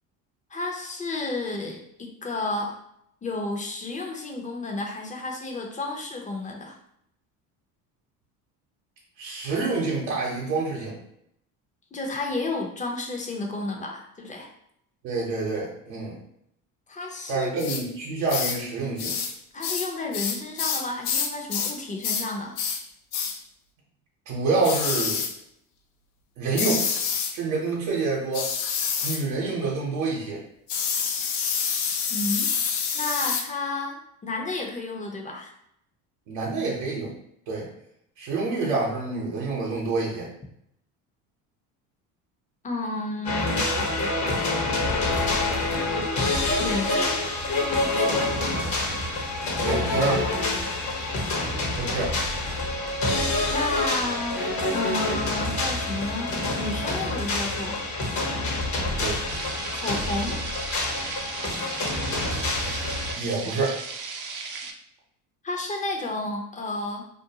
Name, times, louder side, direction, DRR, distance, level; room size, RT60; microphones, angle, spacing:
voice 1, 0.5-2.8 3.2-6.8 11.9-14.5 16.9-17.7 19.5-22.6 32.1-32.5 32.9-35.5 42.6-43.7 46.6-47.2 47.7-48.4 53.5-57.8 59.7-60.4 65.4-67.0, left 2 dB, 15° left, 1 dB, 0.6 m, -31 dB
voice 2, 9.2-11.0 15.0-16.2 17.3-19.1 24.3-25.2 26.4-26.9 27.3-28.5 29.0-30.4 36.3-37.1 37.5-37.7 38.2-40.3 49.6-50.3 51.8-52.2 59.0-59.3 63.2-63.8, right 3 dB, 75° right, -4 dB, 0.9 m, -27 dB
sound 1, 17.6-17.8 18.3-18.6 19.0-19.3 19.6-21.8 22.0-22.3 22.6-22.8 23.1-23.4 24.6-25.3 26.6-27.4 28.3-29.2 30.7-33.5, left 6 dB, 60° left, 0.6 m, -27 dB
sound 2, 43.2-63.1, left 2 dB, 40° left, 0.9 m, -27 dB
sound 3, 59.3-64.7, right 4 dB, 45° right, 0.5 m, -36 dB
2.6 x 2.2 x 2.7 m, 0.73 s
hypercardioid pair, 75°, 44 cm